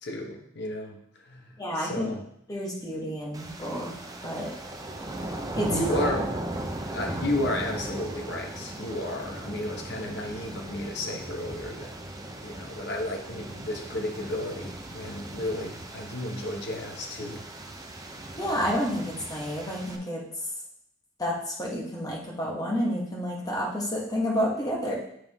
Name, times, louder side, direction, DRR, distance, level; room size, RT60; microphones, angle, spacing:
voice 1, 0.0-2.3 5.7-6.4 6.9-11.9 12.4-17.5, left 1 dB, 60° left, 2 dB, 1.1 m, -33 dB
voice 2, 1.6-2.1 2.5-3.9 4.2-4.5 5.6-5.7 18.4-20.2 21.2-25.0, equal, 20° left, -2 dB, 1.3 m, -30 dB
sound 1, 3.3-20.0, right 1 dB, 20° right, 0.6 m, -37 dB
8.8 x 3.7 x 3.6 m, 0.72 s
head